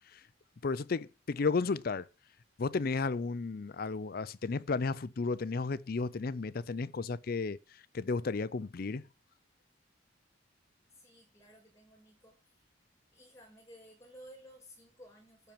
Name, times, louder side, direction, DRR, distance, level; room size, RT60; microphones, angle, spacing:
voice 1, 0.6-2.1 2.6-9.1, left 4 dB, 50° left, 0.5 m, -33 dB
voice 2, 10.9-12.7 13.1-15.5, equal, 15° left, 4.9 m, -56 dB
12.0 x 4.5 x 7.4 m
head